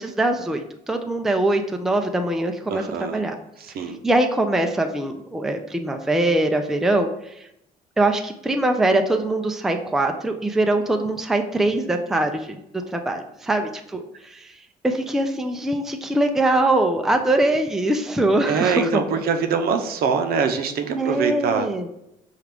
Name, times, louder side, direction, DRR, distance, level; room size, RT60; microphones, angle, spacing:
voice 1, 0.0-3.4 3.8-7.5 8.0-12.6 12.9-14.5 14.8-19.0 20.9-21.9, right 1 dB, ahead, 5 dB, 0.4 m, -22 dB
voice 2, 2.7-3.2 3.6-4.0 18.5-21.7, right 6 dB, 65° right, 6 dB, 0.6 m, -23 dB
5.8 x 2.4 x 3.4 m, 0.82 s
cardioid pair, 110°, 17 cm